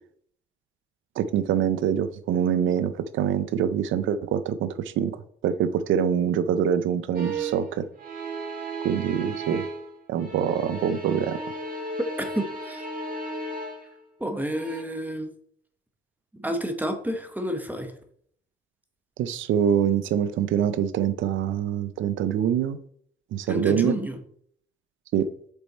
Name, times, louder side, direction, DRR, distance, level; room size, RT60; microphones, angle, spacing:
voice 1, 1.2-5.1 5.4-7.9 8.8-9.6 10.1-11.4 19.2-22.8 23.3-23.9 25.1-25.3, right 8 dB, 75° right, 0.5 m, -24 dB
sound 1, 7.1-7.7 8.0-9.9 10.2-14.0 14.5-14.8, right 2 dB, 45° right, 2.2 m, -34 dB
voice 2, 12.2-12.9 14.2-15.3 16.3-17.9 23.5-24.2, equal, 10° right, 1.0 m, -30 dB
6.9 x 4.4 x 4.1 m
cardioid pair, 90°, 20 cm